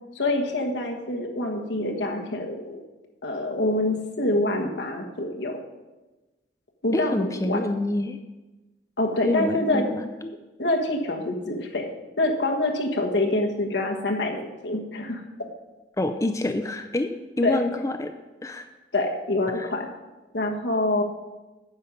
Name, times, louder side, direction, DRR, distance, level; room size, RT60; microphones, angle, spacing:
voice 1, 0.1-2.8 3.2-5.6 6.8-7.6 9.0-9.8 10.6-11.9 12.2-15.2 17.4-17.6 18.9-19.9 20.3-21.0, left 2 dB, 85° left, 2 dB, 1.5 m, -26 dB
voice 2, 6.9-8.2 9.2-10.3 16.0-17.1 17.4-18.1 18.4-18.6 19.5-19.7, left 2 dB, 20° left, 6 dB, 0.4 m, -27 dB
9.6 x 7.1 x 5.3 m, 1.1 s
head